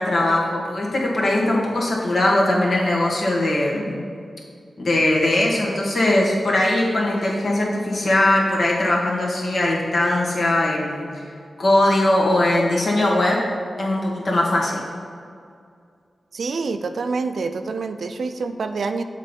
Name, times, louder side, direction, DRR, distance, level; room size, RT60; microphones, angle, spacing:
voice 1, 0.0-4.0 4.8-11.2 11.6-13.4 13.8-14.8, left 1 dB, 65° left, -3 dB, 1.4 m, -20 dB
voice 2, 16.3-19.0, right 4 dB, 75° right, 8 dB, 0.4 m, -26 dB
7.5 x 3.8 x 5.2 m, 2.3 s
cardioid pair, 65°, 0 cm